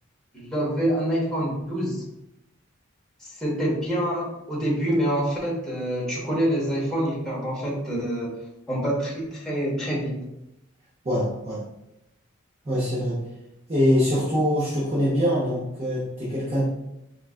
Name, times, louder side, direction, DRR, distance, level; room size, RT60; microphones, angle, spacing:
voice 1, 0.3-2.0 3.2-8.3 8.7-10.2, equal, 5° left, -6 dB, 0.8 m, -26 dB
voice 2, 11.0-11.6 12.6-13.2 13.7-16.6, equal, 30° right, -9 dB, 0.7 m, -23 dB
3.8 x 2.3 x 2.4 m, 0.87 s
head